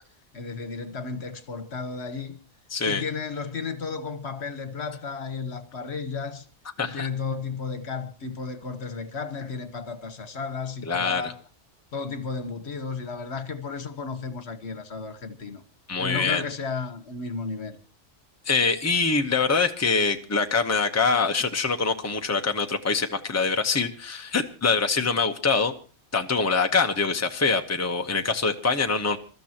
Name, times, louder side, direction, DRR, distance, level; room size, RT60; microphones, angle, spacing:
voice 1, 0.3-2.4 2.8-6.5 6.8-11.4 11.9-15.6 16.0-17.8, left 5 dB, 70° left, 1.5 m, -33 dB
voice 2, 2.7-3.0 6.8-7.1 10.9-11.3 15.9-16.4 18.4-25.7 26.1-29.2, left 4 dB, 15° left, 1.0 m, -24 dB
27.0 x 13.0 x 2.9 m
omnidirectional pair, 1.2 m